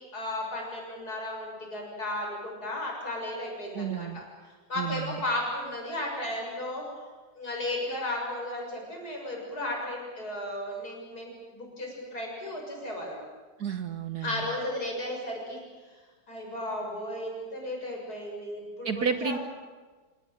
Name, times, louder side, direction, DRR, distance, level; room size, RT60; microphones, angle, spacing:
voice 1, 0.0-6.8 7.4-13.2 14.2-16.0 16.3-19.4, left 1 dB, 50° left, 0 dB, 7.2 m, -35 dB
voice 2, 3.7-4.2 4.8-5.2 13.6-14.5 18.8-19.4, right 6 dB, 55° right, 10 dB, 1.6 m, -31 dB
26.5 x 19.0 x 9.1 m, 1.4 s
omnidirectional pair, 2.1 m